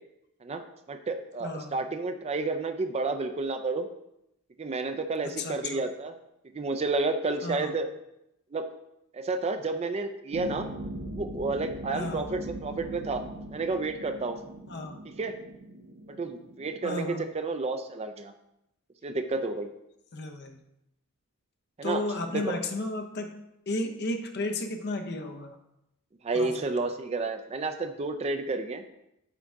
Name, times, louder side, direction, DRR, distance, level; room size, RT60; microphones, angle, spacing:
voice 1, 0.9-3.9 4.6-6.1 6.5-7.9 8.5-8.7 9.1-10.7 11.1-13.2 13.5-14.4 15.1-15.4 16.1-18.3 19.0-19.7 21.8-22.0 22.3-22.6 26.2-28.8, right 3 dB, 30° right, 7 dB, 0.4 m, -31 dB
voice 2, 1.4-1.8 5.4-5.8 7.4-7.7 11.9-12.4 14.7-15.0 16.8-17.3 20.1-20.6 21.8-23.4 23.7-25.6 26.3-26.7, left 2 dB, 50° left, 5 dB, 0.7 m, -33 dB
sound 1, 10.3-17.1, right 1 dB, 80° right, 0.8 m, -41 dB
8.2 x 3.7 x 3.5 m, 0.84 s
head